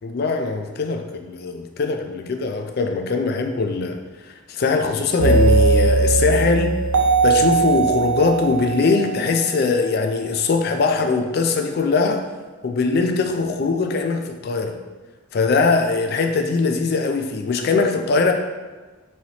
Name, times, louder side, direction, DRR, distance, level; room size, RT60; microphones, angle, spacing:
voice 1, 0.0-4.0 4.5-6.8 7.2-12.2 12.6-14.8 15.3-18.3, left 4 dB, 45° left, 5 dB, 0.3 m, -21 dB
sound 1, 5.2-9.9, right 4 dB, 80° right, 0.5 m, -19 dB
4.0 x 3.2 x 2.9 m, 1.3 s
head